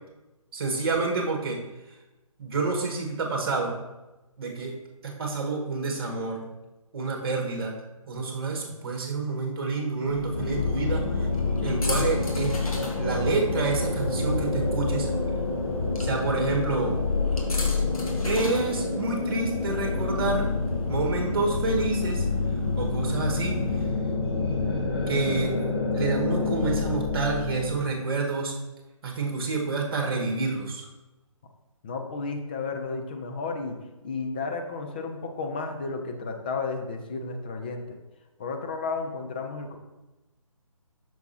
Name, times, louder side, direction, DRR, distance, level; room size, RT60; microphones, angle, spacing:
voice 1, 0.5-1.6 2.4-3.7 4.4-4.7 5.0-6.4 6.9-7.7 8.1-11.3 11.6-12.6 13.0-15.1 16.0-17.0 18.2-20.5 20.9-22.2 22.8-23.8 25.1-25.6 25.9-28.5 29.0-30.9, right 3 dB, 45° right, 1 dB, 1.5 m, -28 dB
sound 1, 10.0-23.9, left 1 dB, 75° left, 1.6 m, -35 dB
sound 2, 10.3-27.8, left 3 dB, 45° left, 1.2 m, -28 dB
voice 2, 31.8-38.0 38.4-39.8, left 4 dB, 15° left, 4 dB, 0.4 m, -33 dB
8.1 x 6.1 x 2.8 m, 1.1 s
figure-of-eight pair, 150°, 18 cm